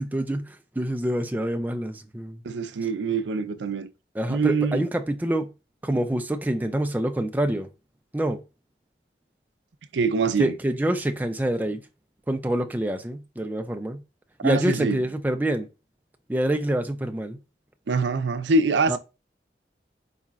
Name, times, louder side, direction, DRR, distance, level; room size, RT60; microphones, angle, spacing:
voice 1, 0.0-2.4 4.1-5.5 5.8-7.7 8.1-8.4 10.4-11.8 12.3-14.0 14.4-15.7 16.3-17.4 18.9-19.0, right 1 dB, 10° right, 0.3 m, -26 dB
voice 2, 2.4-3.9 4.3-4.8 9.9-10.5 14.4-15.0 17.9-19.0, right 3 dB, 80° right, 0.5 m, -24 dB
4.7 x 4.1 x 2.4 m
head